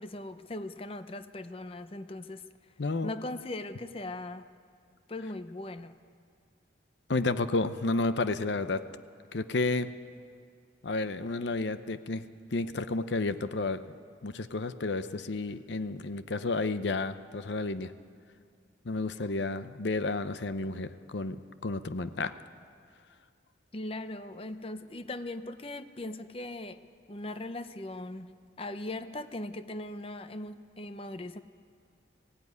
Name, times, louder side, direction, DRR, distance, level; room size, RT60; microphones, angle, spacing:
voice 1, 0.0-2.5 3.0-4.5 5.1-6.0 23.7-31.4, left 2 dB, 30° left, 11 dB, 0.7 m, -39 dB
voice 2, 2.8-3.1 7.1-8.8 9.3-9.9 10.8-12.2 12.5-13.8 14.2-17.9 18.8-22.3, left 3 dB, 70° left, 12 dB, 0.7 m, -31 dB
19.0 x 16.0 x 9.6 m, 2.2 s
head